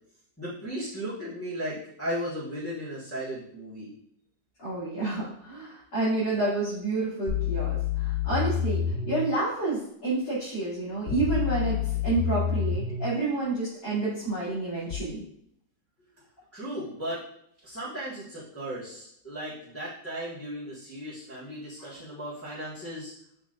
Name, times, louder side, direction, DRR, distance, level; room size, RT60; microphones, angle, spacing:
voice 1, 0.4-3.9 16.5-17.2 17.6-23.1, equal, 10° left, -12 dB, 1.6 m, -36 dB
voice 2, 4.6-15.2 21.8-21.9, right 2 dB, 75° left, -12 dB, 3.3 m, -29 dB
sound 1, 7.3-9.2 11.1-13.1 14.9-15.0, left 8 dB, 60° left, 0.4 m, -28 dB
6.2 x 6.0 x 2.5 m, 0.73 s
omnidirectional pair, 1.9 m